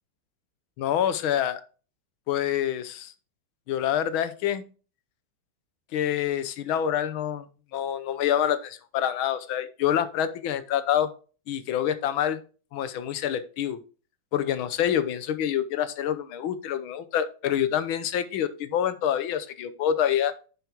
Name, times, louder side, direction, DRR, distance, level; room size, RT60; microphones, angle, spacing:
voice 1, 0.8-1.6 2.3-3.1 3.7-4.6 5.9-7.5 7.7-11.1 11.5-12.4 12.7-13.8 14.3-20.3, left 10 dB, 85° left, 13 dB, 1.7 m, -26 dB
9.8 x 7.1 x 3.0 m, 0.37 s
omnidirectional pair, 2.2 m